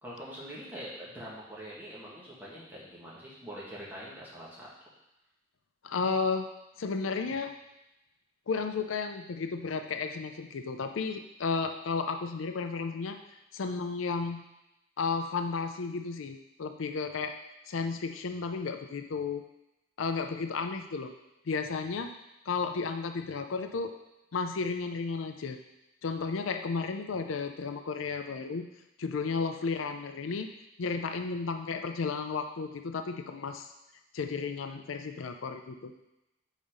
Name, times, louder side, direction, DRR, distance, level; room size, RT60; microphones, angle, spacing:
voice 1, 0.0-4.7, equal, 10° right, -7 dB, 1.7 m, -44 dB
voice 2, 5.8-6.5 6.8-7.5 8.5-13.2 13.5-14.4 15.0-17.3 17.7-19.4 20.0-21.1 21.5-22.1 22.5-23.9 24.3-25.6 26.0-28.6 29.0-30.5 30.8-33.7 34.1-35.9, left 4 dB, 85° left, 6 dB, 0.5 m, -33 dB
5.5 x 4.1 x 5.0 m, 0.92 s
head